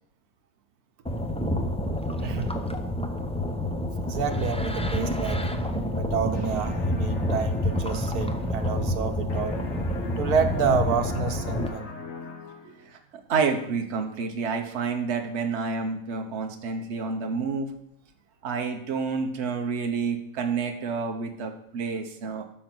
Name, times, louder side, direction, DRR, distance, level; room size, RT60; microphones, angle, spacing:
sound 1, 1.1-11.7, left 1 dB, 5° left, 0.4 m, -28 dB
voice 1, 2.2-2.6 4.1-5.5 6.0-9.6 10.2-11.9, right 6 dB, 85° right, 6 dB, 1.5 m, -28 dB
sound 2, 6.3-9.0 9.3-12.9, left 4 dB, 60° left, 1.5 m, -41 dB
voice 2, 13.3-17.7 18.4-22.4, right 5 dB, 50° right, 4 dB, 1.3 m, -29 dB
13.0 x 5.4 x 6.2 m, 0.72 s
omnidirectional pair, 1.6 m